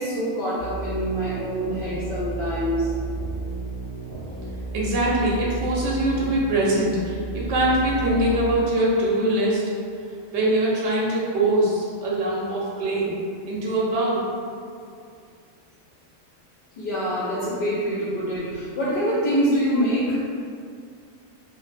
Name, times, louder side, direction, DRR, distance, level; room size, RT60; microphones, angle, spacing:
voice 1, 0.0-2.9 16.8-20.2, equal, 60° left, -9 dB, 0.6 m, -25 dB
sound 1, 0.6-8.5, right 3 dB, 20° right, 0.8 m, -32 dB
voice 2, 4.7-9.6 10.3-13.2 13.5-14.3, right 1 dB, 65° right, -5 dB, 0.8 m, -23 dB
2.4 x 2.0 x 3.1 m, 2.3 s
omnidirectional pair, 1.4 m